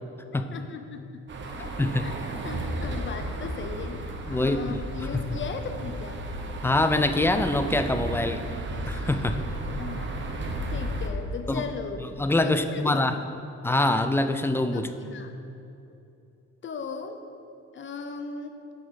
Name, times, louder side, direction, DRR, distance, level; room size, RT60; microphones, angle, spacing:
voice 1, 0.3-1.2 1.5-4.0 4.3-6.2 9.7-10.2 10.6-12.1 12.4-13.1 14.7-15.4 16.6-17.2 17.7-18.6, left 5 dB, 40° left, 7 dB, 0.7 m, -37 dB
sound 1, 1.3-11.1, right 1 dB, 40° right, 0.9 m, -34 dB
voice 2, 1.8-2.1 4.3-5.2 6.6-8.4 8.9-9.4 11.5-11.6 12.2-13.2 13.6-14.9, left 2 dB, 10° left, 9 dB, 0.4 m, -24 dB
6.1 x 4.9 x 6.3 m, 2.8 s
cardioid pair, 90°, 30 cm